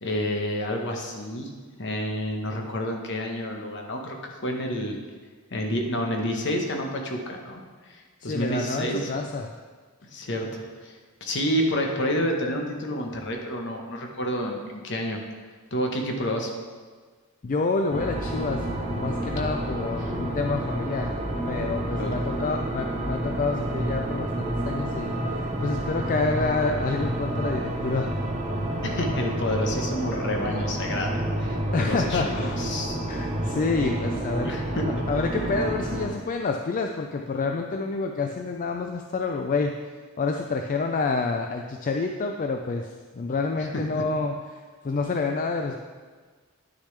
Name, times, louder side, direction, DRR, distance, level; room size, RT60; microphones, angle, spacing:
voice 1, 0.0-1.5 1.8-5.0 5.5-9.1 10.1-15.2 15.7-16.5 21.9-22.2 28.8-31.1 31.4-32.9 34.4-35.0, equal, 55° left, 2 dB, 1.1 m, -29 dB
voice 2, 8.2-9.5 17.4-21.1 21.5-28.1 31.7-32.6 33.1-34.6 34.9-39.8 40.2-45.8, left 3 dB, 40° left, 4 dB, 0.4 m, -28 dB
sound 1, 17.9-36.1, right 1 dB, 30° right, 0.9 m, -29 dB
9.9 x 6.4 x 3.3 m, 1.5 s
head